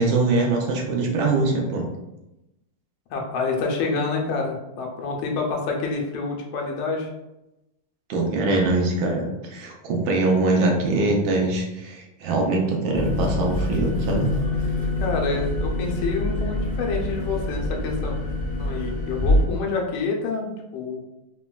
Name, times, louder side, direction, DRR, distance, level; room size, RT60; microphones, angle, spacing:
voice 1, 0.0-1.8 8.1-14.3 19.4-19.5, right 2 dB, 80° right, 0 dB, 1.4 m, -23 dB
voice 2, 3.1-7.1 15.0-18.2 18.6-21.0, left 4 dB, 85° left, 1 dB, 1.5 m, -27 dB
sound 1, 12.9-19.4, left 2 dB, 60° left, 0.6 m, -25 dB
4.0 x 2.2 x 2.2 m, 0.93 s
omnidirectional pair, 2.2 m